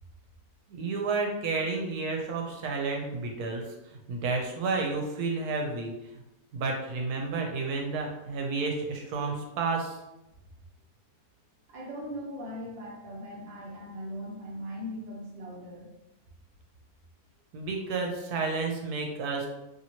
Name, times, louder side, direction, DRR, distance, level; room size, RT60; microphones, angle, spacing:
voice 1, 0.7-6.2 6.5-10.0 17.5-19.5, right 4 dB, 80° right, 1 dB, 1.1 m, -31 dB
voice 2, 11.7-15.9, equal, 45° right, -2 dB, 0.6 m, -39 dB
2.8 x 2.8 x 2.8 m, 0.94 s
omnidirectional pair, 1.7 m